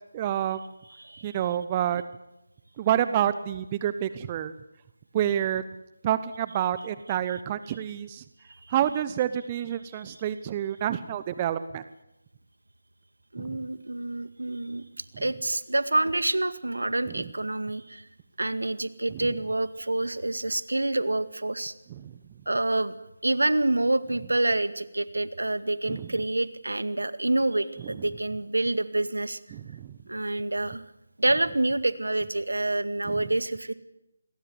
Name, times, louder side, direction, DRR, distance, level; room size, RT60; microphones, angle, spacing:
voice 1, 0.1-0.6 1.2-2.0 2.8-4.5 5.1-5.6 6.0-8.2 8.7-11.8 13.4-13.6 17.1-17.2 19.1-19.3 22.0-22.1 25.9-26.1 29.5-29.9 33.0-33.3, right 10 dB, 20° right, 13 dB, 0.9 m, -28 dB
voice 2, 1.0-1.4 13.3-14.9 15.2-18.0 18.4-21.7 22.5-23.0 23.2-29.4 30.1-30.9 31.2-33.7, right 2 dB, 75° right, 12 dB, 2.0 m, -27 dB
27.5 x 22.0 x 8.0 m, 0.94 s
figure-of-eight pair, 155°, 0 cm